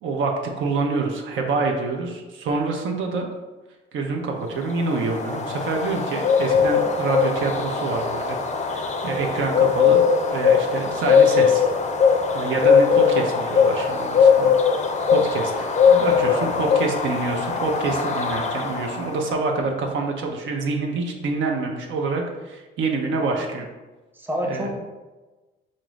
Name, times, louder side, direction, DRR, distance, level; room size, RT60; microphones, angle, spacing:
voice 1, 0.0-3.3 3.9-8.4 8.6-10.0 10.3-11.7 12.3-14.5 15.1-23.7 24.4-24.7, right 3 dB, 75° right, 2 dB, 0.6 m, -26 dB
sound 1, 4.6-19.2, left 6 dB, 35° left, 0.4 m, -20 dB
voice 2, 16.1-16.7 24.1-24.8, equal, 10° right, 0 dB, 0.6 m, -30 dB
4.0 x 2.4 x 3.1 m, 1.2 s
cardioid pair, 90°, 20 cm